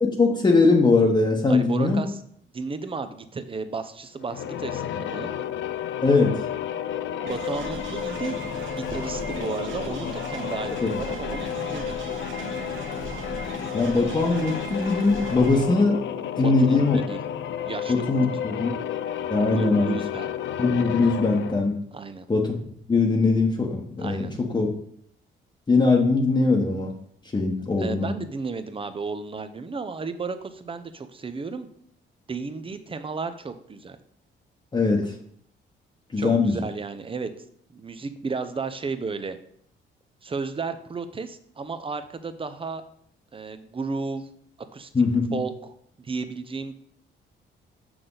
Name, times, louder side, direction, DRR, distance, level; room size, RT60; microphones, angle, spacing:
voice 1, 0.0-2.0 6.0-6.3 10.8-11.0 13.7-16.0 16.4-17.0 17.9-18.7 19.3-20.0 20.6-21.8 22.3-22.6 22.9-24.3 24.5-24.7 25.7-26.9 27.3-28.1 34.7-35.1 36.1-36.6 44.9-45.4, left 3 dB, 25° left, -1 dB, 1.1 m, -21 dB
voice 2, 1.5-2.2 2.5-5.3 7.2-8.4 8.7-12.1 16.4-17.2 17.7-18.2 19.5-20.3 21.9-22.3 24.0-24.3 27.8-31.7 32.3-34.0 36.2-37.3 37.7-39.4 40.2-42.8 43.3-44.3 44.7-44.9 45.3-46.7, right 4 dB, 25° right, 10 dB, 0.7 m, -33 dB
sound 1, 4.2-21.7, left 9 dB, 70° left, 0.5 m, -32 dB
sound 2, 7.3-15.7, right 4 dB, 75° right, 1.2 m, -38 dB
6.4 x 6.1 x 3.9 m, 0.67 s
cardioid pair, 90°, 20 cm